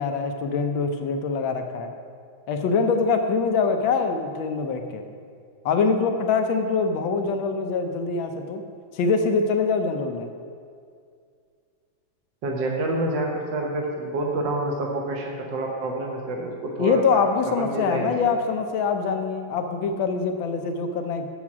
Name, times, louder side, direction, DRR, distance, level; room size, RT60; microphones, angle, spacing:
voice 1, 0.0-1.9 2.5-5.0 5.6-8.6 8.9-10.3 16.8-21.3, left 4 dB, 80° left, 6 dB, 1.5 m, -24 dB
voice 2, 12.4-18.1, right 2 dB, 65° right, 0 dB, 1.5 m, -28 dB
7.3 x 7.3 x 6.0 m, 2.2 s
omnidirectional pair, 2.2 m